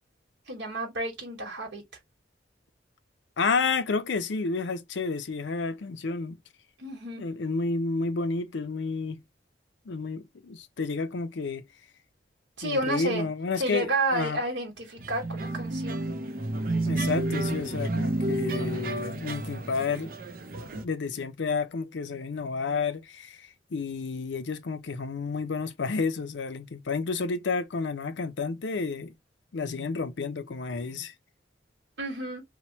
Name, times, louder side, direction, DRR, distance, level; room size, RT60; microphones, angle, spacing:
voice 1, 0.5-1.8 6.8-7.2 12.6-13.3 13.6-16.0 32.0-32.4, right 2 dB, 80° right, 1.1 m, -31 dB
voice 2, 3.4-6.4 7.2-9.2 9.9-11.6 12.6-14.4 16.9-20.1 20.8-29.1 29.5-31.1, left 4 dB, 75° left, 0.5 m, -30 dB
sound 1, 15.0-20.8, right 2 dB, 50° right, 0.5 m, -30 dB
3.0 x 2.0 x 2.8 m
head